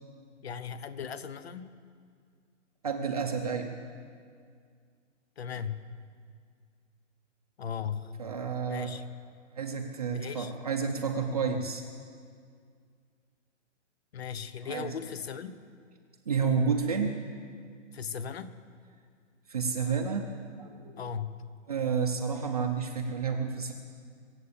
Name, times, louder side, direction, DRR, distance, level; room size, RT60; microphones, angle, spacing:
voice 1, 0.4-1.7 5.4-5.8 7.6-8.1 8.7-9.1 10.1-10.5 11.4-11.6 14.1-15.5 17.9-18.5 21.0-21.4, left 7 dB, 55° left, 14 dB, 0.9 m, -37 dB
voice 2, 2.8-3.7 8.2-8.9 9.6-11.8 14.7-14.9 16.3-17.1 19.5-20.3 20.6-21.0 21.7-23.7, right 5 dB, 30° right, 2 dB, 0.7 m, -30 dB
24.0 x 8.1 x 7.1 m, 2.1 s
hypercardioid pair, 175°, 37 cm